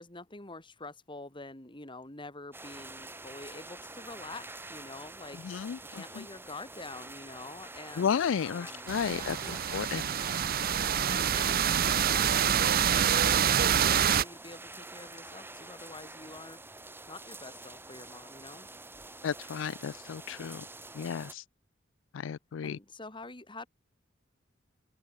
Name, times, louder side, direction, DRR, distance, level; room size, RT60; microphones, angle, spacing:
voice 1, 0.0-9.8 11.1-16.6 17.1-18.7 22.6-23.7, left 3 dB, 25° left, 3.8 m, -47 dB
sound 1, 2.5-21.3, right 2 dB, 10° right, 4.1 m, -47 dB
voice 2, 5.4-6.2 8.0-10.0 19.2-20.6 20.9-21.4 22.1-22.8, left 7 dB, 75° left, 0.4 m, -33 dB
sound 2, 8.9-14.2, right 8 dB, 50° right, 0.7 m, -26 dB
head